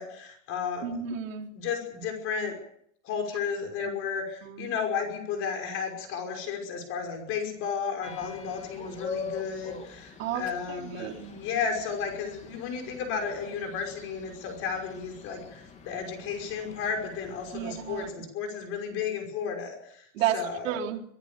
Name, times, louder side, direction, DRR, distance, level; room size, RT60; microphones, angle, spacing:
voice 1, 0.0-0.9 1.5-2.5 3.0-20.7, left 6 dB, 35° left, 4 dB, 5.7 m, -33 dB
voice 2, 0.8-1.5 3.8-3.9 4.4-4.7 10.2-11.3 17.5-18.1 20.2-20.4 20.6-21.0, right 10 dB, 85° right, 0 dB, 4.3 m, -32 dB
sound 1, 8.0-18.1, left 5 dB, 20° left, 3.3 m, -44 dB
25.0 x 18.5 x 7.0 m, 0.67 s
supercardioid pair, 170°, 39 cm